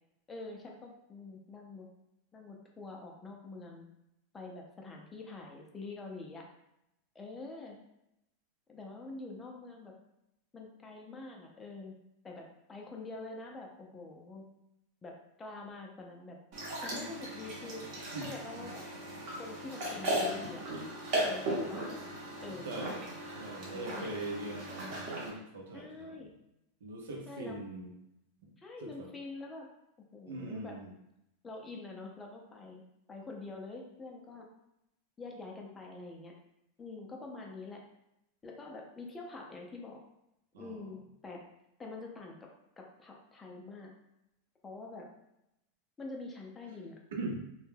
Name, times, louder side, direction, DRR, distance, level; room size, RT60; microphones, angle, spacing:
voice 1, 0.3-1.9 2.3-3.9 4.3-6.5 7.1-7.8 8.7-9.9 10.5-11.9 12.2-14.5 15.0-16.4 16.8-17.8 18.2-18.8 19.4-20.6 21.1-21.8 22.4-22.8 23.7-24.1 25.7-26.3 27.3-27.6 28.6-29.7 30.1-30.8 31.4-32.8 33.1-34.4 35.2-36.3 36.8-37.8 38.4-40.0 40.6-41.4 41.8-42.5 42.8-43.9 44.6-45.1 46.0-46.9, left 3 dB, 20° left, 0 dB, 0.5 m, -45 dB
sound 1, 16.5-25.3, right 1 dB, 50° right, 0.8 m, -37 dB
voice 2, 22.5-26.3 26.8-27.9 28.4-28.5 28.8-29.1 30.3-30.9 40.5-40.9 47.2-47.4, right 2 dB, 85° right, 0 dB, 0.6 m, -42 dB
2.2 x 2.1 x 3.2 m, 0.84 s
hypercardioid pair, 125°, 0 cm